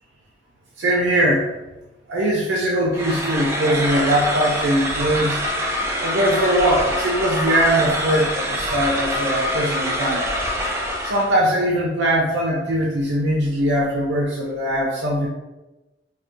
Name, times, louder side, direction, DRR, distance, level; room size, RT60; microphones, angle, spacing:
voice 1, 0.8-1.5 2.1-5.4 6.0-10.2 10.6-10.8 11.0-15.3, right 1 dB, 65° right, -3 dB, 0.5 m, -21 dB
sound 1, 2.9-11.4, equal, 15° right, 0.4 m, -25 dB
4.0 x 2.1 x 2.5 m, 1.0 s
head